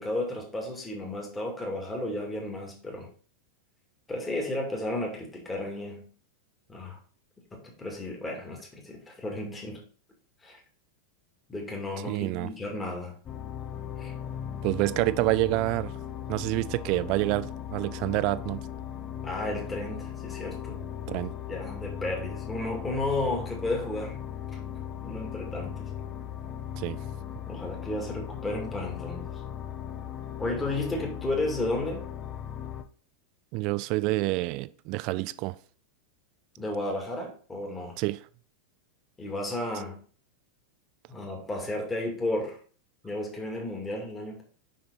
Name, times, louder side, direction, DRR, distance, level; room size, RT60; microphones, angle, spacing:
voice 1, 0.0-3.1 4.1-6.1 6.7-7.0 7.5-9.8 10.4-10.6 11.5-13.2 14.0-14.1 19.2-20.8 21.5-24.2 25.0-25.8 27.5-29.3 30.4-32.1 36.6-38.0 39.2-40.0 41.1-42.6 43.0-44.4, left 2 dB, 15° left, 2.2 m, -33 dB
voice 2, 12.1-12.5 14.6-15.9 16.3-18.6 21.1-21.3 26.8-27.0 33.5-35.6 38.0-38.2, right 21 dB, 40° right, 0.4 m, -27 dB
sound 1, 13.3-32.8, left 9 dB, 30° left, 0.7 m, -38 dB
6.4 x 5.7 x 3.9 m
figure-of-eight pair, 90°, 0 cm